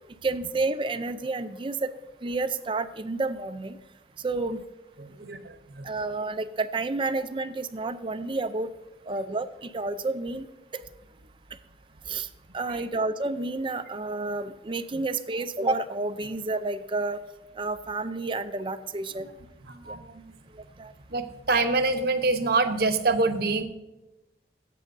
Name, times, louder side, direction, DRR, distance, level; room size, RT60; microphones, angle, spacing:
voice 1, 0.2-1.9 2.2-3.8 4.2-4.6 5.8-8.7 9.1-10.5 10.7-10.8 12.1-12.3 12.5-17.2 17.6-19.3 19.9-20.0 20.5-20.9, right 3 dB, 30° right, 11 dB, 0.5 m, -30 dB
voice 2, 5.0-5.9 12.7-12.9 19.2-19.3 19.7-20.3 21.1-23.6, right 3 dB, 60° right, 8 dB, 0.9 m, -26 dB
16.5 x 8.3 x 2.6 m, 0.98 s
head